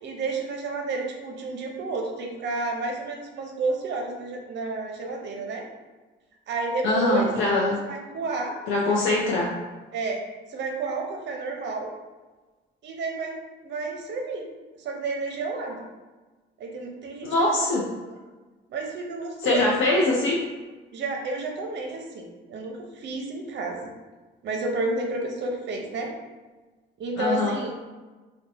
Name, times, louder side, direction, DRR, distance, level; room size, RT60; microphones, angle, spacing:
voice 1, 0.0-5.6 6.5-7.3 7.7-8.5 9.9-10.2 10.5-11.9 12.8-13.3 13.6-14.4 14.8-15.8 16.6-17.6 18.7-19.8 20.9-23.9 24.4-26.1 27.0-27.7, right 3 dB, 65° right, 2 dB, 0.6 m, -30 dB
voice 2, 6.8-7.8 8.7-9.5 17.2-17.9 19.4-20.4 27.2-27.6, left 2 dB, 80° left, -3 dB, 0.6 m, -23 dB
2.6 x 2.2 x 4.0 m, 1.3 s
cardioid pair, 90°, 20 cm